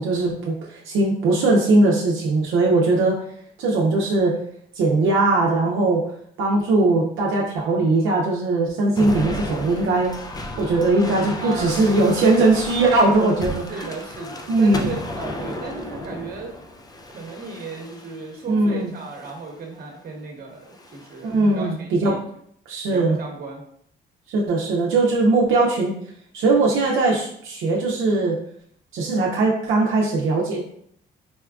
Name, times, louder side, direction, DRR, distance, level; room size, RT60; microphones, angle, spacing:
voice 1, 0.0-3.2 3.6-4.4 4.7-6.0 6.4-10.1 10.6-13.6 14.5-14.9 18.5-18.9 21.2-21.7 22.0-22.2 22.7-23.2 24.3-25.9 26.3-28.4 28.9-30.6, right 2 dB, 80° right, -3 dB, 0.6 m, -20 dB
sound 1, 9.0-18.3 19.0-19.5 20.6-21.3, left 1 dB, 20° left, 0.4 m, -33 dB
voice 2, 11.4-12.5 13.7-16.5 17.1-22.2 22.9-23.6, right 4 dB, 50° right, 0 dB, 0.9 m, -35 dB
4.2 x 2.2 x 2.3 m, 0.66 s
cardioid pair, 90°, 20 cm